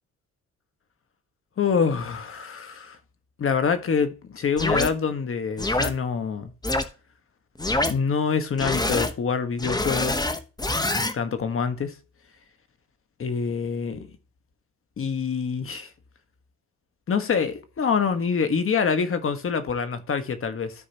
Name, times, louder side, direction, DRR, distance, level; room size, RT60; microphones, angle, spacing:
voice 1, 1.6-3.0 3.4-6.5 7.6-10.2 11.1-11.9 13.2-14.1 15.0-15.9 17.1-20.7, left 6 dB, 45° left, 1.4 m, -26 dB
sound 1, 4.6-4.9 5.6-5.9 6.6-6.8 7.6-7.9 8.6-9.1 9.6-11.1, left 2 dB, 15° left, 1.0 m, -25 dB
13.5 x 4.8 x 2.9 m
cardioid pair, 90°, 30 cm